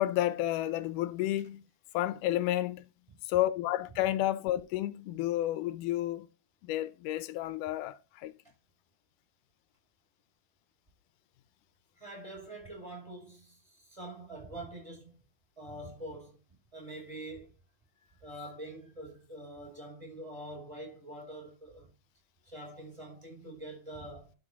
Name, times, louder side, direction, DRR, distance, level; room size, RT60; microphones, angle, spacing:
voice 1, 0.0-1.6 1.9-2.9 3.3-6.3 6.6-8.3, left 14 dB, 90° left, 2.2 m, -31 dB
voice 2, 12.0-15.2 15.6-16.4 16.7-17.5 17.9-21.9 22.4-24.3, right 1 dB, 10° right, 6.2 m, -45 dB
12.0 x 5.5 x 3.6 m
omnidirectional pair, 3.6 m